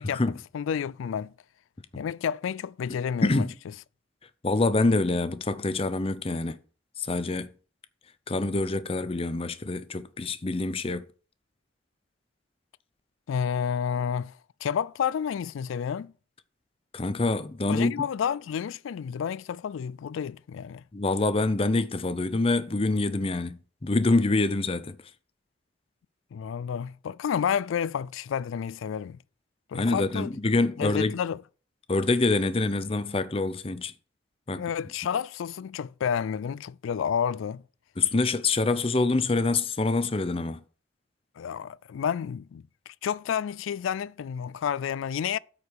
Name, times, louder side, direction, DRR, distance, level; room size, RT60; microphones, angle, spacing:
voice 1, 0.0-0.4 1.9-2.0 2.9-3.5 4.4-6.6 7.0-7.5 8.3-11.0 16.9-18.1 20.9-24.9 29.7-31.1 31.9-33.9 34.5-34.6 38.0-40.6, left 3 dB, 30° left, 0.6 m, -26 dB
voice 2, 0.5-1.3 1.9-3.4 13.3-14.3 14.6-16.1 17.7-20.8 26.3-29.2 29.7-30.3 30.8-31.4 34.5-37.6 41.4-45.4, left 7 dB, 80° left, 0.3 m, -30 dB
8.2 x 4.9 x 6.7 m
head